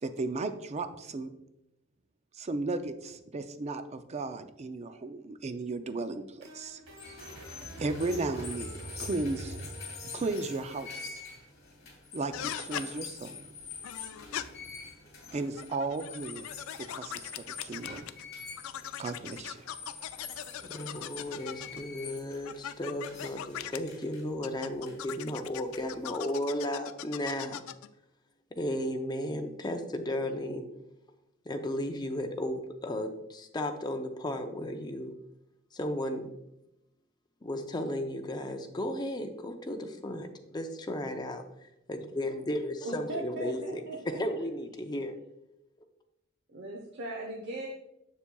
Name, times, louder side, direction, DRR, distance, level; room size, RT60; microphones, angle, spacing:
voice 1, 0.0-1.3 2.3-6.8 7.8-9.7 10.1-11.2 12.1-13.4 15.3-16.5 16.9-17.3 17.6-18.0 19.0-19.6, right 3 dB, 35° right, 10 dB, 0.4 m, -35 dB
sound 1, 6.0-10.9, right 2 dB, 90° right, 1.8 m, -45 dB
sound 2, 6.9-26.1, left 4 dB, 55° left, 1.9 m, -46 dB
sound 3, 12.3-12.9 13.8-14.4 15.5-18.2 18.6-21.8 22.5-23.8 24.4-27.9, left 11 dB, 90° left, 0.3 m, -40 dB
voice 2, 20.6-27.6 28.5-30.6 31.4-35.1 35.7-36.3 37.4-45.1, left 1 dB, 20° left, 5 dB, 0.5 m, -34 dB
voice 3, 42.8-44.2 46.5-47.7, right 1 dB, 60° right, 0 dB, 0.8 m, -38 dB
7.2 x 6.7 x 2.3 m, 0.87 s
head